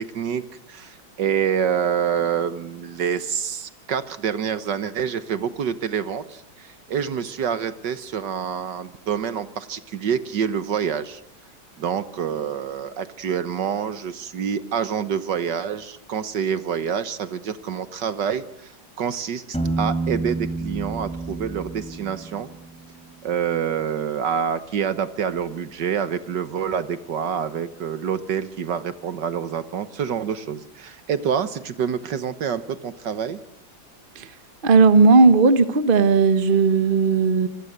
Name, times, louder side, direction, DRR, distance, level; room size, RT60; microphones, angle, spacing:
voice 1, 0.0-11.2 11.8-18.7 19.0-22.5 23.2-33.4, right 8 dB, 65° right, 13 dB, 1.7 m, -27 dB
Piano, 19.5-23.2, right 3 dB, 5° left, 3.6 m, -29 dB
voice 2, 34.6-37.5, right 4 dB, 30° right, 12 dB, 1.2 m, -16 dB
27.0 x 20.0 x 8.0 m, 0.77 s
omnidirectional pair, 2.1 m